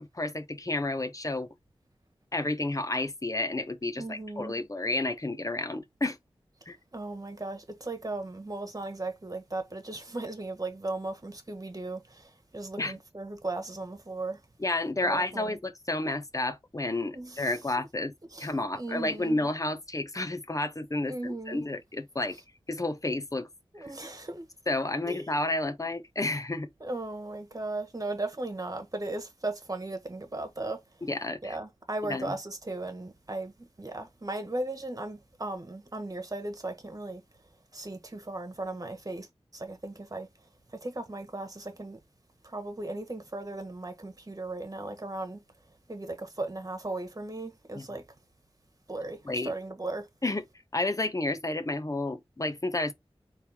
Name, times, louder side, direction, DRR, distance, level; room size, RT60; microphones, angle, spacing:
voice 1, 0.0-1.5 2.3-6.2 6.7-6.8 12.8-13.0 14.6-18.1 18.4-22.4 22.7-23.5 24.7-26.7 31.1-31.6 32.1-32.4 47.7-48.0 49.2-49.5 50.2-50.4 50.7-52.9, left 2 dB, 35° left, 0.9 m, -31 dB
voice 2, 4.0-4.6 6.9-14.4 15.0-15.6 17.1-17.5 17.8-17.9 18.3-19.4 21.1-21.6 23.7-24.5 25.0-25.2 26.8-30.8 31.4-37.2 37.7-39.3 39.5-40.3 40.7-42.0 42.4-45.4 45.9-48.0 48.9-50.1, right 2 dB, 35° right, 1.5 m, -37 dB
4.3 x 3.2 x 3.5 m
wide cardioid pair, 50°, 10 cm